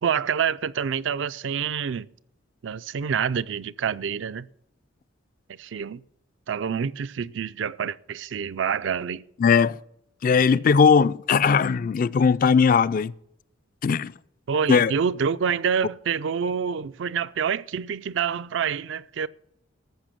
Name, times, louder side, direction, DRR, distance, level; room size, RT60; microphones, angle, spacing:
voice 1, 0.0-2.1 2.6-4.5 5.6-6.0 6.5-9.2 10.3-10.6 14.5-19.3, right 7 dB, 65° right, 0.4 m, -27 dB
voice 2, 9.4-9.8 10.2-13.1 13.8-14.1 14.7-14.9, left 6 dB, 45° left, 0.3 m, -19 dB
13.5 x 6.1 x 7.5 m
head